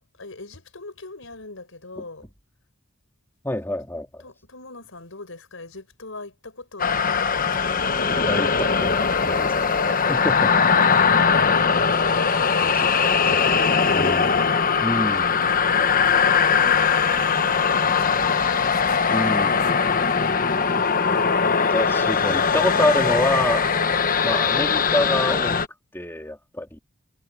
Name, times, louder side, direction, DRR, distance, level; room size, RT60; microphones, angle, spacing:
voice 1, 0.0-2.3 4.2-7.8 12.4-14.4 15.1-20.3, left 3 dB, 70° left, 6.1 m, -42 dB
voice 2, 3.4-4.2 8.0-11.1 12.6-12.9 13.3-14.4 14.8-15.3 19.1-19.5 21.7-23.7 24.2-25.6 25.9-26.8, left 1 dB, 10° left, 2.9 m, -27 dB
sound 1, 6.8-25.7, left 6 dB, 45° left, 1.1 m, -20 dB
head